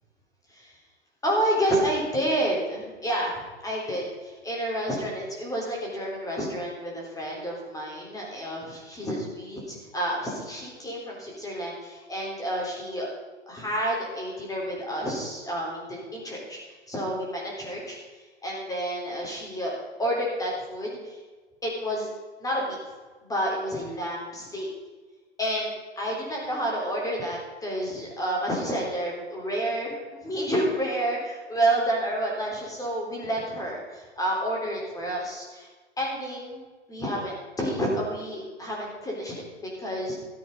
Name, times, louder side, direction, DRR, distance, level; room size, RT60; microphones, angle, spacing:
voice 1, 1.2-13.1 13.5-16.6 16.9-21.2 21.6-22.1 22.4-22.8 23.2-24.7 25.4-25.7 26.0-35.7 36.0-36.6 36.9-40.2, right 1 dB, 10° left, -2 dB, 3.7 m, -29 dB
14.0 x 8.4 x 5.3 m, 1.3 s
figure-of-eight pair, 115°, 35 cm